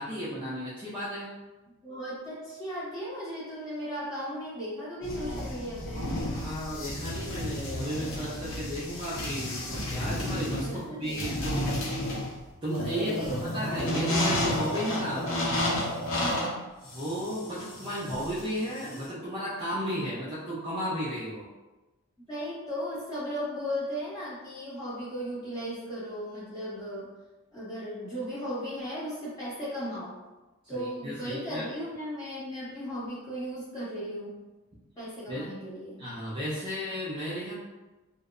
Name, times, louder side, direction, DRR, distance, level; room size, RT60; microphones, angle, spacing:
voice 1, 0.0-1.4 6.3-11.6 12.6-15.5 16.9-21.5 30.7-31.7 35.3-35.5 36.0-37.5, equal, 20° right, -8 dB, 0.4 m, -34 dB
voice 2, 1.8-6.0 10.6-11.6 12.8-13.5 16.2-16.5 22.3-27.1 27.5-30.2 30.7-34.4 35.0-36.0, equal, 15° left, -9 dB, 1.0 m, -36 dB
sound 1, 5.0-19.0, left 1 dB, 60° left, 0.5 m, -32 dB
2.6 x 2.0 x 2.4 m, 1.1 s
head